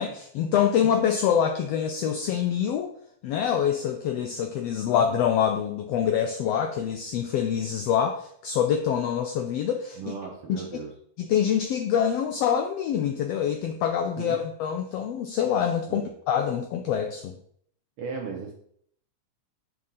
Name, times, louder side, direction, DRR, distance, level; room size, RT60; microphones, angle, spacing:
voice 1, 0.0-2.9 3.2-10.1 10.5-10.6 11.2-17.3, left 8 dB, 80° left, 5 dB, 1.4 m, -25 dB
voice 2, 10.0-10.9 14.2-14.4 15.9-16.1 18.0-18.5, right 5 dB, 70° right, 0 dB, 1.4 m, -36 dB
6.1 x 4.3 x 5.4 m, 0.65 s
omnidirectional pair, 3.4 m